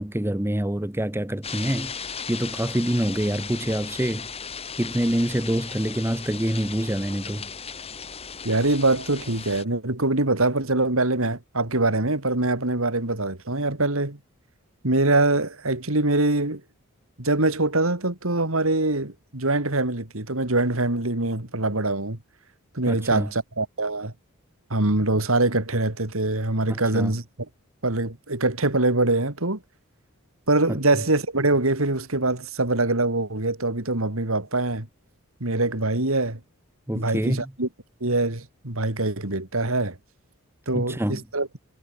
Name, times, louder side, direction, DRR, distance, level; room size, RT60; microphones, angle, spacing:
voice 1, 0.0-2.0 2.3-4.3 4.8-7.5 22.9-23.3 26.7-27.1 30.7-30.8 36.9-37.5 40.7-41.2, right 1 dB, 10° right, 0.9 m, -26 dB
sound 1, 1.4-9.6, left 6 dB, 25° left, 2.4 m, -36 dB
voice 2, 8.4-14.2 14.8-16.6 17.2-22.2 22.7-24.1 24.7-27.2 27.8-29.6 30.5-34.9 35.4-36.4 36.9-37.7 38.0-40.0 40.7-41.5, right 2 dB, 70° right, 3.1 m, -23 dB
head